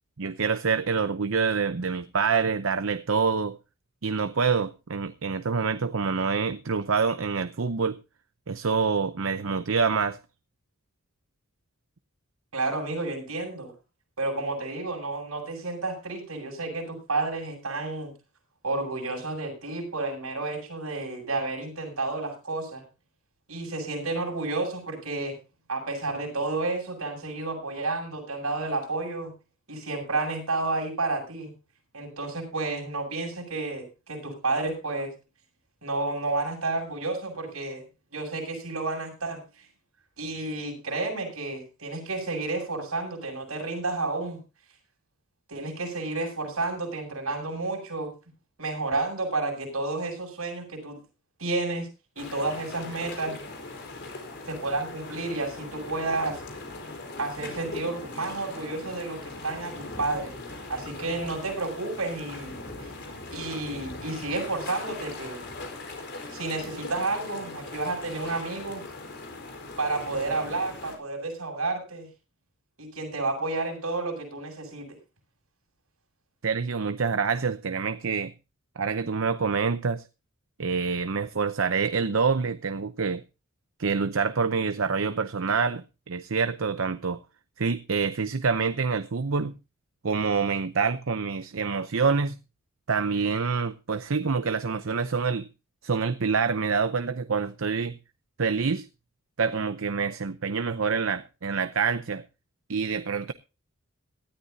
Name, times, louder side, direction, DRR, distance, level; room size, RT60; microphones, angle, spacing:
voice 1, 0.2-3.6 4.0-8.0 8.5-10.2 76.4-78.3 78.8-80.1 80.6-83.2 83.8-87.2 87.6-89.5 90.0-92.4 92.9-95.5 95.8-98.0 98.4-98.9 99.4-102.2 102.7-103.3, right 5 dB, 65° right, 0.7 m, -26 dB
voice 2, 12.5-13.7 14.2-18.1 18.6-22.8 23.5-25.3 25.7-29.3 29.7-31.5 31.9-35.1 35.8-37.8 38.1-39.4 40.2-44.4 45.5-48.1 48.6-51.0 51.4-51.9 52.2-53.4 54.5-56.4 57.2-60.3 60.7-62.9 63.3-65.4 66.3-68.8 69.8-72.1 72.8-75.0, right 3 dB, 85° right, 7.8 m, -31 dB
sound 1, 52.2-71.0, left 2 dB, 55° left, 4.6 m, -40 dB
18.5 x 13.0 x 2.7 m
head